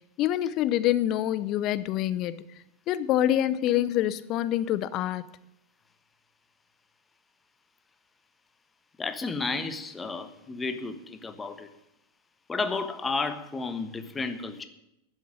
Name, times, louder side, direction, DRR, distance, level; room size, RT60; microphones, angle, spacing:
voice 1, 0.2-2.4 2.9-5.2, left 12 dB, 35° left, 17 dB, 0.7 m, -26 dB
voice 2, 9.0-11.7 12.5-14.6, left 3 dB, 15° left, 9 dB, 1.3 m, -32 dB
12.5 x 7.6 x 9.8 m, 0.84 s
figure-of-eight pair, 90°, 0 cm